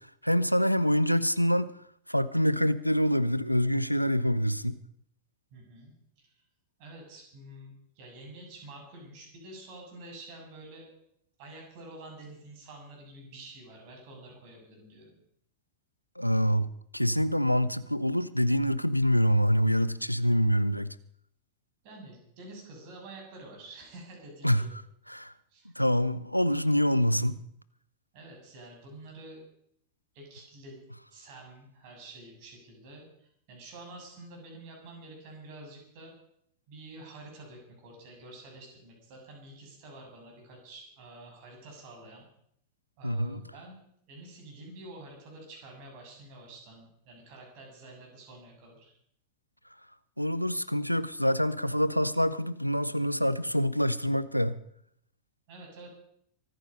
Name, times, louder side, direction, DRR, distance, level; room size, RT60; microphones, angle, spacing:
voice 1, 0.2-1.7 2.1-4.8 16.2-21.0 24.4-24.6 25.1-25.3 25.8-27.4 43.0-43.4 50.2-54.6, equal, 90° left, 0.6 m, -26 dB
voice 2, 5.5-6.3 6.8-10.9 11.4-15.2 21.8-24.7 25.5-25.7 28.1-29.4 30.1-30.8 31.1-36.1 36.7-42.3 43.0-43.8 44.1-48.9 55.5-55.9, right 2 dB, 45° right, 7.0 m, -48 dB
24.5 x 9.4 x 5.4 m
figure-of-eight pair, 90°, 0 cm